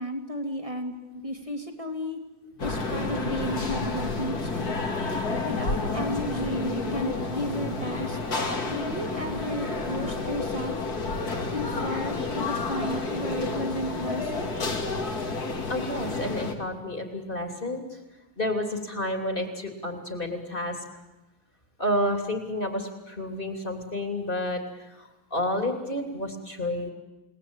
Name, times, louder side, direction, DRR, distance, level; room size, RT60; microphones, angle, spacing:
voice 1, 0.0-0.9 1.2-2.2 2.6-4.7 5.4-8.2 8.7-10.8 11.5-14.5, equal, 15° right, 4 dB, 2.7 m, -33 dB
sound 1, 2.6-16.6, left 3 dB, 45° left, 2.9 m, -30 dB
voice 2, 15.7-18.0 18.4-20.8 21.8-26.9, left 1 dB, 25° left, 5 dB, 3.4 m, -30 dB
29.0 x 19.0 x 9.0 m, 1.1 s
omnidirectional pair, 2.3 m